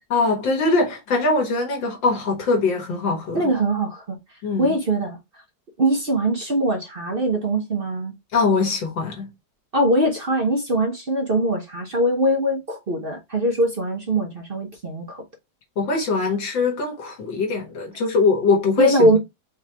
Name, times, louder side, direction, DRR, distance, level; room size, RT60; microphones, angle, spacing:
voice 1, 0.1-3.5 4.4-4.8 8.3-9.3 15.8-19.2, left 3 dB, 85° left, 2.3 m, -22 dB
voice 2, 3.3-4.2 4.6-5.2 5.8-8.1 9.7-15.2 18.8-19.2, right 1 dB, 40° right, 0.9 m, -22 dB
4.9 x 3.2 x 3.4 m
omnidirectional pair, 2.0 m